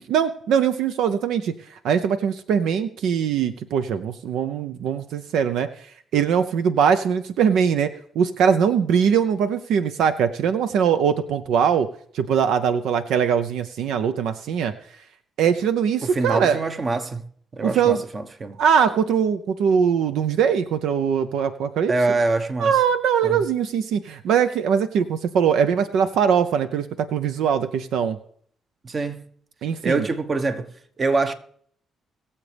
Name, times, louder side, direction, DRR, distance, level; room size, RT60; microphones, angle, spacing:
voice 1, 0.1-5.7 6.1-11.9 12.1-14.7 15.4-16.6 17.6-18.0 18.6-21.9 22.6-28.2 29.6-30.1, right 7 dB, 80° right, 0.6 m, -21 dB
voice 2, 16.0-17.2 17.5-18.6 21.9-22.8 23.2-23.4 28.8-29.2 29.8-31.3, right 3 dB, 35° right, 1.1 m, -24 dB
21.0 x 7.3 x 3.4 m
cardioid pair, 90°, 0 cm